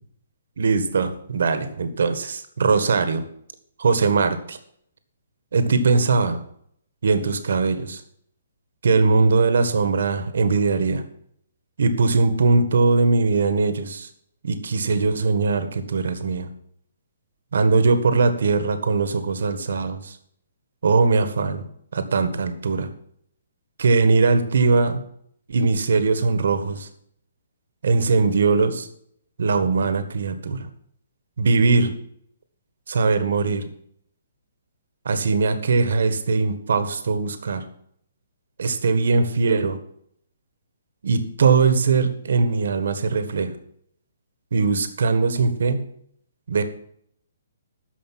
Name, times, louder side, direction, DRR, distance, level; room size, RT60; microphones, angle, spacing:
voice 1, 0.6-3.2 3.8-4.6 5.5-6.4 7.0-8.0 8.8-11.0 11.8-14.1 14.4-16.5 17.5-20.2 20.8-21.6 21.9-22.9 23.8-25.0 25.5-26.9 27.8-28.9 29.4-30.7 31.4-31.9 32.9-33.6 35.0-37.6 38.6-39.8 41.0-43.5 44.5-45.8 46.5-46.6, right 4 dB, 70° right, 10 dB, 1.6 m, -20 dB
13.0 x 5.3 x 7.5 m, 0.67 s
hypercardioid pair, 160°, 0 cm